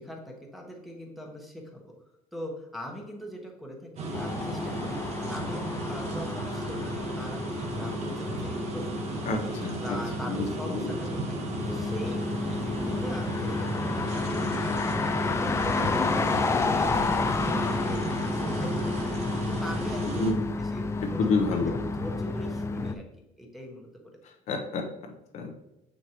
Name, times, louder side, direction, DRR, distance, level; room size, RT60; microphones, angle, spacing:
voice 1, 0.0-1.9 2.3-5.0 5.3-9.5 9.8-11.4 11.7-20.2 20.6-23.1 23.4-23.9, equal, ahead, -1 dB, 1.3 m, -41 dB
sound 1, 4.0-20.3, right 2 dB, 55° right, 1.4 m, -34 dB
sound 2, 4.1-22.9, left 3 dB, 20° left, 0.4 m, -31 dB
voice 2, 9.2-10.0 10.3-10.9 20.1-20.4 21.2-21.8 24.5-24.9 25.3-25.6, left 3 dB, 60° left, 4 dB, 0.9 m, -29 dB
6.6 x 6.2 x 3.0 m, 0.90 s
cardioid pair, 135°, 14 cm